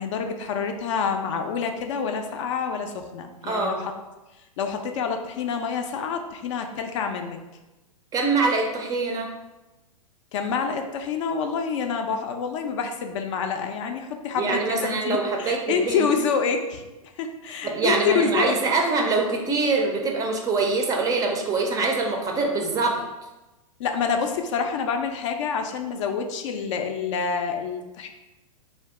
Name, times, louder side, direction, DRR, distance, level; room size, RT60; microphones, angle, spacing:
voice 1, 0.0-3.9 4.6-7.4 10.3-16.8 17.2-18.6 23.8-28.1, left 6 dB, 55° left, 5 dB, 0.4 m, -27 dB
voice 2, 3.4-3.8 8.1-9.3 14.4-16.1 17.6-23.0, right 3 dB, 20° right, 1 dB, 0.4 m, -24 dB
2.5 x 2.2 x 3.5 m, 1.0 s
hypercardioid pair, 115°, 19 cm